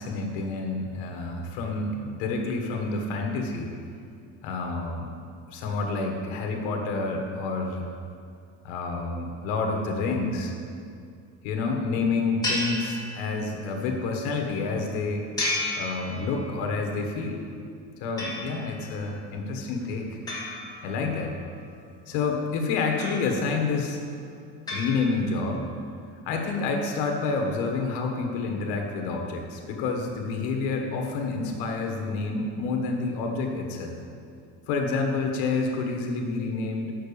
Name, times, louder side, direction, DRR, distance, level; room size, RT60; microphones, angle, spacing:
voice 1, 0.0-3.7 4.4-5.1 5.5-7.9 8.6-10.5 11.4-15.3 15.8-17.4 18.0-20.2 20.8-21.3 22.1-24.0 24.7-25.6 26.2-34.0 34.7-36.9, left 4 dB, 85° left, 2 dB, 1.5 m, -28 dB
sound 1, 12.4-13.6 15.4-16.6 18.2-18.9 20.3-21.4 23.0-23.7 24.7-25.6, left 1 dB, 10° left, 2.2 m, -33 dB
6.6 x 5.7 x 6.9 m, 2.3 s
cardioid pair, 135°, 33 cm